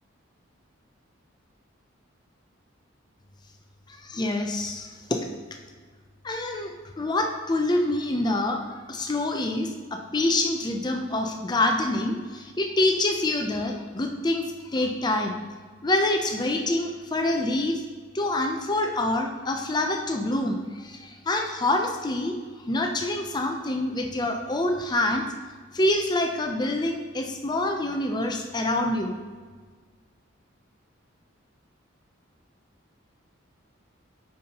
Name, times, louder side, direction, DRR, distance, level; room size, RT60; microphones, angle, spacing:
voice 1, 4.1-5.2 6.2-8.6 8.9-14.4 14.7-15.4 15.8-17.8 18.1-22.3 22.7-25.2 25.7-29.1, left 1 dB, 20° left, 3 dB, 0.5 m, -26 dB
8.6 x 5.5 x 2.9 m, 1.5 s
head